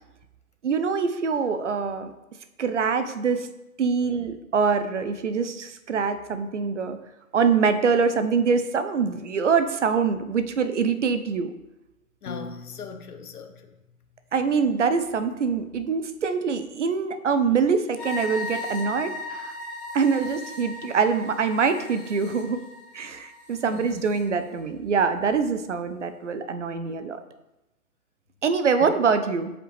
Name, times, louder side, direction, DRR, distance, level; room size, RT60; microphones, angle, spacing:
voice 1, 0.6-2.1 2.6-3.5 3.8-7.0 7.3-11.5 14.3-19.5 19.9-22.6 22.9-27.2 28.4-29.5, right 5 dB, 50° right, 10 dB, 0.6 m, -24 dB
voice 2, 12.2-13.7 23.7-24.1 28.7-28.9, left 5 dB, 70° left, 7 dB, 1.0 m, -39 dB
Piano, 12.3-14.5, left 4 dB, 50° left, 0.6 m, -43 dB
sound 1, 18.0-24.2, left 2 dB, ahead, 1.2 m, -37 dB
7.4 x 5.1 x 3.2 m, 0.95 s
hypercardioid pair, 150°, 46 cm